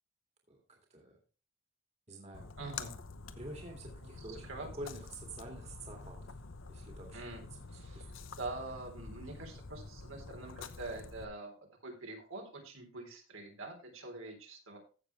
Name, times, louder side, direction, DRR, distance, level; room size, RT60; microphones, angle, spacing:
voice 1, 0.5-1.2 2.1-2.5 3.3-6.2 6.7-7.5 7.7-8.1, right 1 dB, 30° right, 1 dB, 2.2 m, -48 dB
Splash splatter, 2.3-11.2, left 4 dB, 65° left, 0.9 m, -48 dB
voice 2, 2.6-2.9 4.0-4.1 4.5-4.7 7.1-7.4 7.7-8.1 8.4-11.5 11.8-14.8, right 2 dB, 75° right, 2 dB, 3.8 m, -45 dB
15.0 x 6.8 x 3.3 m, 0.36 s
head